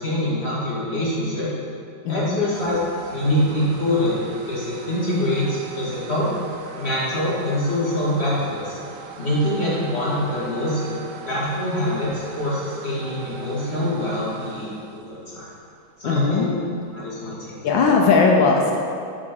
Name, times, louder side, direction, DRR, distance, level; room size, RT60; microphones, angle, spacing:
voice 1, 0.0-1.5 2.1-2.8 3.0-6.3 6.8-8.8 9.2-10.9 11.2-15.5 16.0-16.5 16.9-17.5, left 1 dB, 30° left, -9 dB, 2.3 m, -24 dB
voice 2, 2.0-2.4 16.0-16.5 17.6-18.7, left 4 dB, 75° left, 1 dB, 1.3 m, -18 dB
sound 1, 2.5-17.3, right 5 dB, 85° right, 1.5 m, -40 dB
7.3 x 6.2 x 4.6 m, 2.4 s
omnidirectional pair, 2.2 m